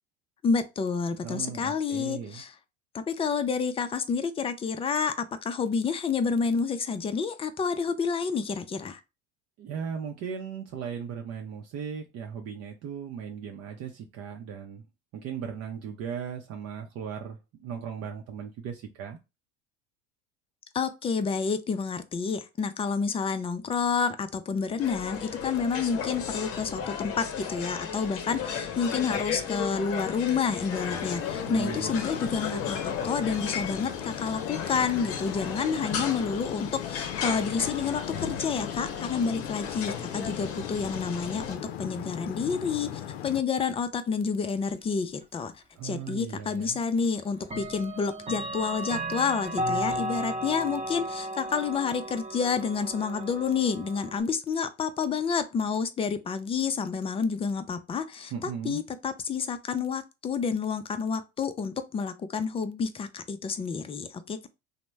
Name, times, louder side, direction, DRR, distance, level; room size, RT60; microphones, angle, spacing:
voice 1, 0.4-2.5 2.9-5.1 5.4-9.0 20.7-64.5, left 5 dB, 20° left, 0.4 m, -29 dB
voice 2, 1.2-2.4 9.6-14.9 15.1-19.2 31.5-31.9 45.8-46.8 58.3-58.8, right 7 dB, 50° right, 0.6 m, -37 dB
sound 1, 24.8-41.6, left 7 dB, 45° left, 0.8 m, -35 dB
sound 2, 30.7-43.4, left 10 dB, 80° left, 0.5 m, -38 dB
Clock, 46.1-46.2 47.4-54.2, right 1 dB, 20° right, 0.8 m, -34 dB
2.9 x 2.1 x 3.3 m
hypercardioid pair, 90°, 32 cm